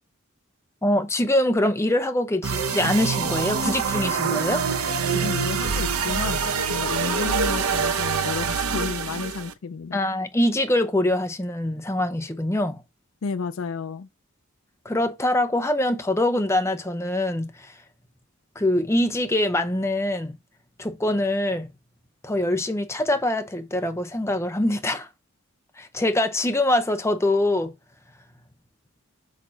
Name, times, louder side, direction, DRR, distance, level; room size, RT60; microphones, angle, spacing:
voice 1, 0.8-4.6 9.9-12.8 14.8-17.8 18.6-20.3 20.8-21.7 22.2-25.1 25.8-27.7, left 1 dB, 10° left, 0.7 m, -24 dB
sound 1, 2.4-9.5, right 5 dB, 80° right, 0.8 m, -25 dB
voice 2, 5.1-6.4 6.7-10.0 13.2-14.1, left 5 dB, 65° left, 0.4 m, -31 dB
6.5 x 3.9 x 4.5 m
head